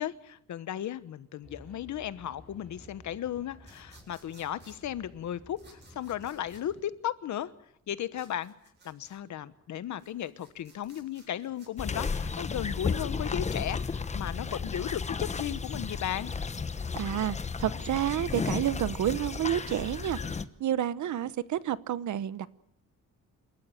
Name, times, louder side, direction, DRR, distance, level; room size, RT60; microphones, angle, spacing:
voice 1, 0.0-7.5 7.9-8.5 8.8-16.3, left 11 dB, 60° left, 14 dB, 1.2 m, -35 dB
sound 1, 1.4-6.8, equal, 5° left, 6.3 m, -54 dB
sound 2, 3.6-4.8 5.6-6.6 8.1-9.2 9.8-12.1, right 3 dB, 35° right, 7.5 m, -59 dB
sound 3, 11.8-20.4, left 5 dB, 20° left, 0.9 m, -33 dB
voice 2, 16.9-22.5, right 11 dB, 65° right, 16 dB, 1.0 m, -30 dB
28.5 x 13.5 x 8.9 m, 0.76 s
cardioid pair, 155°, 32 cm